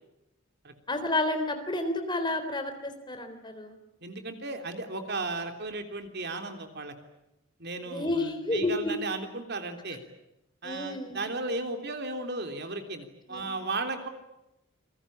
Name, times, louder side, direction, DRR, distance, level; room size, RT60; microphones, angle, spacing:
voice 1, 0.9-3.8 7.9-8.9 10.6-11.2 13.3-13.5, left 2 dB, 20° left, 8 dB, 3.6 m, -30 dB
voice 2, 4.0-6.9 7.6-10.0 10.6-14.1, right 2 dB, 55° right, 6 dB, 3.4 m, -35 dB
28.5 x 22.0 x 8.8 m, 0.89 s
head